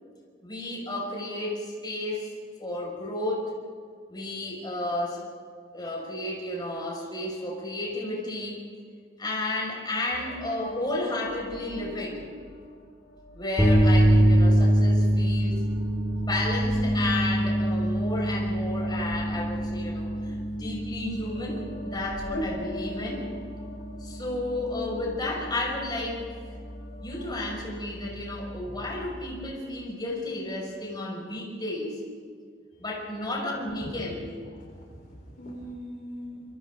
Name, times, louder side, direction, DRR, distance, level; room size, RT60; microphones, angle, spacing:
voice 1, 0.4-2.3 2.6-3.5 4.1-5.2 5.7-8.6 9.2-12.2 13.3-15.6 16.3-23.3 24.0-26.2 26.5-26.6 27.0-32.0 32.8-34.2, left 2 dB, 20° left, -2 dB, 6.1 m, -32 dB
sound 1, 10.1-27.5, left 1 dB, 80° left, 4.0 m, -43 dB
sound 2, 13.6-29.5, equal, 5° right, 2.4 m, -26 dB
voice 2, 33.8-34.1 34.4-36.4, equal, 45° left, -2 dB, 4.4 m, -41 dB
28.5 x 24.0 x 3.9 m, 2.1 s
head